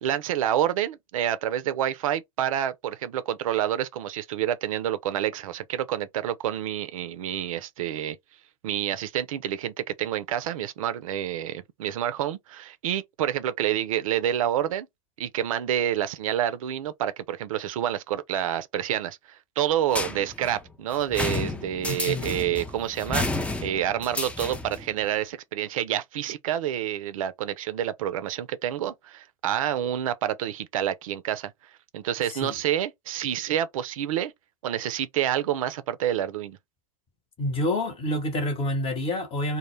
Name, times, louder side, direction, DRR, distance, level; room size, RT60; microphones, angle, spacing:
voice 1, 0.0-8.2 8.6-14.9 15.2-23.3 23.6-31.5 31.9-34.3 34.6-36.6, right 11 dB, 70° right, 0.4 m, -28 dB
sound 1, 19.9-24.9, left 2 dB, 5° left, 0.3 m, -31 dB
voice 2, 21.9-22.3 32.4-32.5 37.4-39.6, left 1 dB, 30° left, 0.9 m, -28 dB
2.1 x 2.0 x 3.0 m
hypercardioid pair, 95°, 18 cm